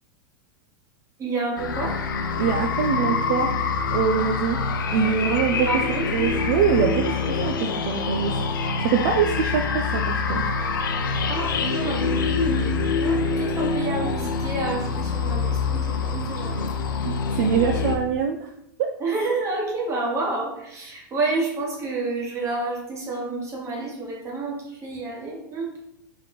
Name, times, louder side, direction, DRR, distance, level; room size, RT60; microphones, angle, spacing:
voice 1, 1.2-2.0 5.6-6.1 11.3-16.7 19.0-25.7, right 3 dB, 25° right, -2 dB, 1.3 m, -29 dB
sound 1, 1.6-18.0, left 4 dB, 75° left, 0.5 m, -25 dB
voice 2, 2.4-3.5 3.9-4.6 4.9-5.7 6.1-8.3 8.8-10.4 17.0-18.5 18.8-18.9, right 7 dB, 60° right, 3 dB, 0.3 m, -24 dB
3.0 x 2.9 x 3.9 m, 0.81 s
hypercardioid pair, 100°, 11 cm